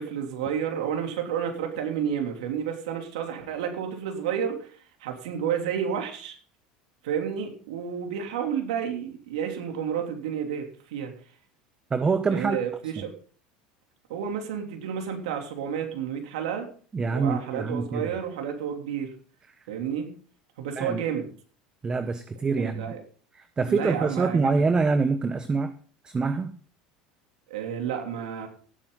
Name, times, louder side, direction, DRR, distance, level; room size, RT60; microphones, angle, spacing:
voice 1, 0.0-6.4 7.0-11.1 12.3-13.1 14.1-16.7 17.1-19.1 19.7-20.1 20.6-21.3 22.6-23.0 23.7-24.5 27.5-28.5, right 8 dB, 85° right, 3 dB, 3.1 m, -31 dB
voice 2, 11.9-12.6 13.0-13.1 16.9-18.1 20.8-21.0 21.8-23.0 23.3-25.8 26.0-26.6, right 4 dB, 20° right, 10 dB, 1.0 m, -25 dB
17.0 x 8.8 x 3.9 m, 0.43 s
supercardioid pair, 110°, 4 cm